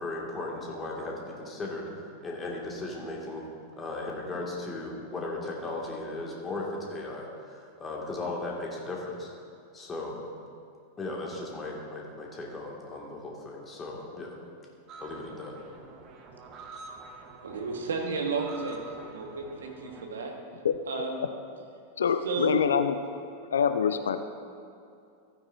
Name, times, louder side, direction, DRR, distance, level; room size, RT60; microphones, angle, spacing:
voice 1, 0.0-1.9 2.2-3.5 3.8-9.3 9.7-10.2 11.0-14.3 15.0-15.6, left 2 dB, 20° left, -2 dB, 2.0 m, -36 dB
sound 1, 14.9-20.1, right 3 dB, 35° right, 1.0 m, -47 dB
voice 2, 17.4-20.3 20.9-21.2 22.2-22.6, right 4 dB, 65° right, 2 dB, 1.4 m, -33 dB
voice 3, 22.0-22.9 23.5-24.2, left 7 dB, 65° left, 10 dB, 0.4 m, -25 dB
15.5 x 9.4 x 2.6 m, 2.5 s
figure-of-eight pair, 90°, 0 cm